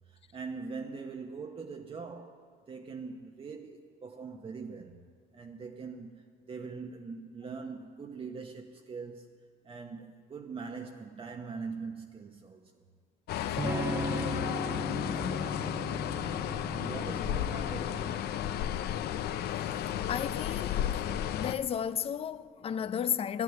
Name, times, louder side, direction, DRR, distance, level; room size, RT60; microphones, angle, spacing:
voice 1, 0.1-5.0 5.3-9.4 9.6-12.8 16.7-18.4, right 4 dB, 35° right, 0.9 m, -42 dB
sound 1, 13.3-21.6, left 10 dB, 70° left, 0.7 m, -33 dB
voice 2, 13.3-13.7 14.9-15.6 20.1-21.0 21.4-23.4, left 8 dB, 35° left, 0.5 m, -34 dB
Electric guitar / Strum, 13.6-19.3, right 2 dB, 15° right, 0.6 m, -38 dB
12.5 x 9.7 x 9.2 m
cardioid pair, 110°, 17 cm